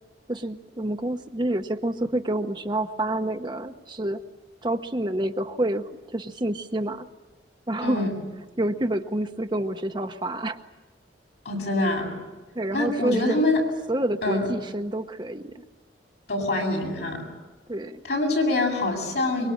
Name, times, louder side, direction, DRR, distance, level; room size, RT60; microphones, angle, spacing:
voice 1, 0.3-4.2 4.6-7.1 7.7-8.0 8.6-10.6 12.5-13.4 13.9-15.6 17.7-18.0, right 1 dB, 25° right, 6 dB, 0.9 m, -28 dB
voice 2, 7.8-8.2 11.4-12.1 12.7-13.6 14.2-14.5 16.3-17.2 18.0-19.5, left 2 dB, 65° left, 0 dB, 7.7 m, -25 dB
25.0 x 23.0 x 8.7 m, 1.2 s
head